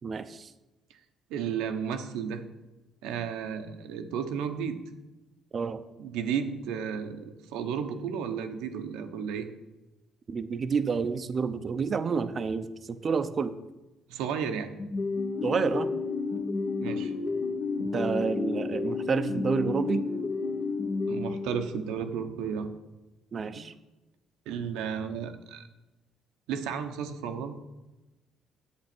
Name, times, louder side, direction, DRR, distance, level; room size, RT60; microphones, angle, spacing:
voice 1, 0.0-0.5 5.5-5.8 10.3-13.5 15.4-15.9 17.8-20.1 23.3-23.7, right 5 dB, 40° right, 10 dB, 0.7 m, -29 dB
voice 2, 1.3-2.4 3.0-4.8 6.0-9.5 14.1-14.7 16.8-17.2 21.1-22.7 23.5-23.6 24.5-25.7 26.5-27.5, right 7 dB, 85° right, 7 dB, 1.0 m, -33 dB
sound 1, 14.8-22.0, left 4 dB, 55° left, 1.2 m, -31 dB
8.8 x 7.9 x 6.1 m, 1.0 s
supercardioid pair, 80°, 0 cm